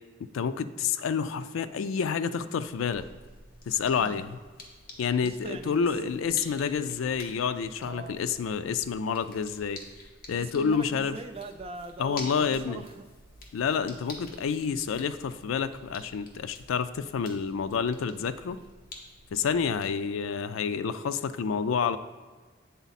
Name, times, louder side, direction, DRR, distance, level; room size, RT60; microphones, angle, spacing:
voice 1, 0.3-3.1 3.7-4.4 5.0-9.8 10.3-11.2 12.0-12.8 13.5-18.6 19.3-22.0, left 6 dB, 90° left, 12 dB, 0.3 m, -29 dB
sound 1, 2.6-20.0, left 2 dB, 50° left, 1.0 m, -49 dB
voice 2, 5.2-6.9 7.8-8.2 10.3-13.0 19.4-19.6, right 3 dB, 30° right, 6 dB, 0.4 m, -42 dB
8.2 x 4.0 x 4.1 m, 1.4 s
head